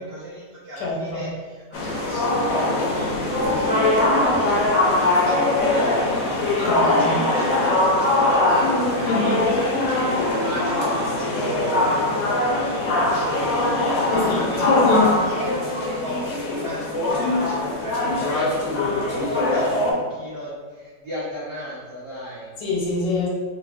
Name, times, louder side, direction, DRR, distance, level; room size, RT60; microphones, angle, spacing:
voice 1, 0.0-15.5 15.7-22.5, equal, 55° right, -9 dB, 0.7 m, -36 dB
voice 2, 0.8-1.3 6.6-7.2 9.0-9.4 14.1-15.2 22.6-23.3, left 3 dB, 85° left, -4 dB, 1.5 m, -23 dB
sound 1, 1.7-19.9, left 2 dB, 60° left, 1.0 m, -21 dB
3.2 x 2.3 x 3.4 m, 1.5 s
omnidirectional pair, 1.8 m